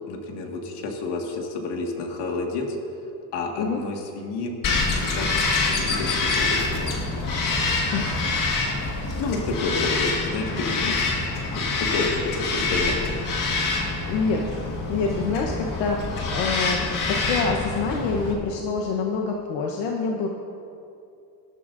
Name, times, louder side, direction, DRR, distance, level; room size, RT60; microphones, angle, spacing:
voice 1, 0.1-2.8 3.3-5.4 5.7-7.0 9.2-13.2, left 3 dB, 65° left, 2 dB, 1.9 m, -30 dB
Bird vocalization bird call bird song, 4.6-18.3, left 3 dB, 45° left, 1.8 m, -26 dB
voice 2, 7.9-8.3 9.5-9.6 14.1-14.5 14.9-20.3, left 4 dB, 85° left, 0 dB, 1.1 m, -26 dB
19.0 x 11.5 x 2.6 m, 2.7 s
cardioid pair, 135°, 44 cm